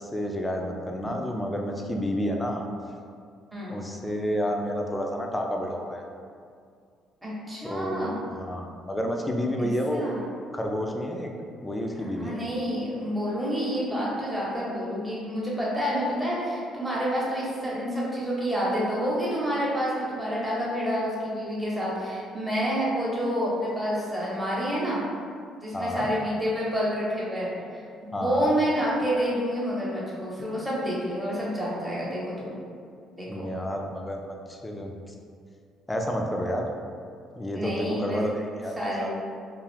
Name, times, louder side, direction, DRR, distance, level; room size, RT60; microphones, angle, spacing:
voice 1, 0.0-2.7 3.7-6.0 7.6-8.1 8.4-10.1 10.5-11.3 11.6-12.4 25.7-26.1 28.1-28.5 33.3-34.9 35.9-36.7 37.4-38.7 39.0-39.1, equal, 15° left, 1 dB, 0.4 m, -30 dB
voice 2, 7.2-8.2 9.6-10.2 12.0-25.0 25.6-32.6 33.2-33.5 37.5-38.2 38.8-39.1, equal, 10° right, -6 dB, 0.9 m, -28 dB
2.4 x 2.4 x 3.3 m, 2.2 s
supercardioid pair, 80°, 0 cm